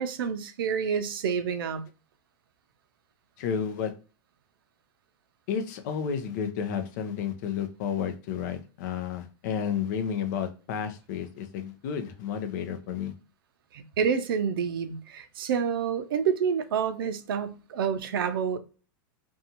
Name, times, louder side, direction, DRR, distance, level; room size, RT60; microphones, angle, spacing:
voice 1, 0.0-1.8 14.0-18.6, right 7 dB, 85° right, 0.5 m, -28 dB
voice 2, 3.4-3.9 5.5-13.1, left 7 dB, 55° left, 0.6 m, -31 dB
2.6 x 2.3 x 2.8 m
supercardioid pair, 145°, 11 cm